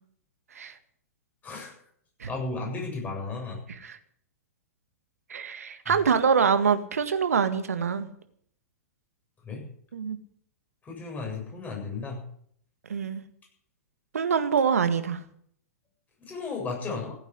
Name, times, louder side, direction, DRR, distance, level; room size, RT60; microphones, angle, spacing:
voice 1, 2.3-3.6 9.4-9.7 10.8-12.2 16.2-17.1, left 3 dB, 20° left, 0 dB, 7.3 m, -34 dB
voice 2, 3.7-4.0 5.3-8.1 9.9-10.2 12.9-13.2 14.1-15.2, right 6 dB, 70° right, 10 dB, 1.8 m, -25 dB
16.0 x 9.2 x 9.7 m, 0.65 s
figure-of-eight pair, 105°, 8 cm